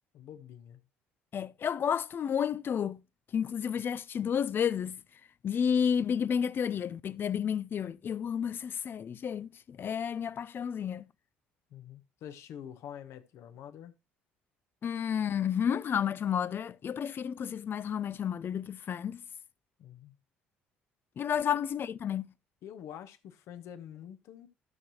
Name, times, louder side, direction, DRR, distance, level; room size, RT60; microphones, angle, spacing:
voice 1, 0.1-0.8 11.7-13.9 19.8-20.2 22.6-24.5, left 9 dB, 60° left, 1.0 m, -46 dB
voice 2, 1.3-3.0 3.3-5.0 5.4-11.1 14.8-19.2 21.2-22.3, left 8 dB, 45° left, 0.4 m, -31 dB
13.5 x 6.2 x 3.0 m
hypercardioid pair, 55°, 5 cm